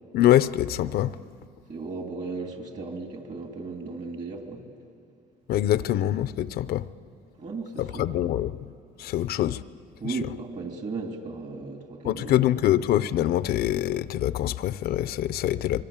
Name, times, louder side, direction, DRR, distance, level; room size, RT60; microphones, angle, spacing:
voice 1, 0.1-1.1 5.5-6.9 7.8-8.5 9.0-9.6 10.0-10.2 12.0-15.8, left 12 dB, 65° left, 0.6 m, -24 dB
voice 2, 1.7-4.6 7.4-8.3 10.0-12.4, right 3 dB, 45° right, 3.2 m, -35 dB
25.0 x 22.0 x 8.8 m
cardioid pair, 110°, 17 cm